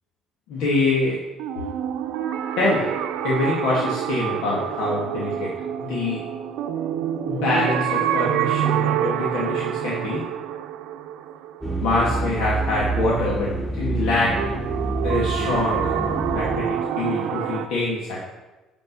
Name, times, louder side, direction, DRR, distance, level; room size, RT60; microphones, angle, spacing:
voice 1, 0.5-1.2 1.5-1.7 2.6-2.9 3.2-5.5 5.8-6.2 7.3-10.2 11.8-14.3 15.0-15.9 16.3-18.3, left 2 dB, 85° left, -5 dB, 2.4 m, -24 dB
sound 1, 1.4-12.3 14.4-17.7, right 9 dB, 85° right, 0.7 m, -27 dB
sound 2, 11.6-17.1, right 2 dB, 5° left, 1.3 m, -28 dB
11.5 x 5.3 x 6.2 m, 1.1 s
cardioid pair, 145°, 0 cm